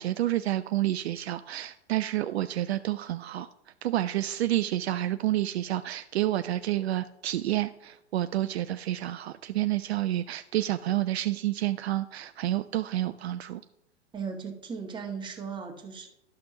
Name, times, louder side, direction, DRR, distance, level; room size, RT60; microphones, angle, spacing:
voice 1, 0.0-3.5 3.8-13.6, right 14 dB, 60° right, 11 dB, 0.5 m, -29 dB
voice 2, 14.1-16.1, right 6 dB, 15° right, 1 dB, 1.4 m, -37 dB
12.5 x 5.9 x 2.8 m, 0.82 s
figure-of-eight pair, 105°, 36 cm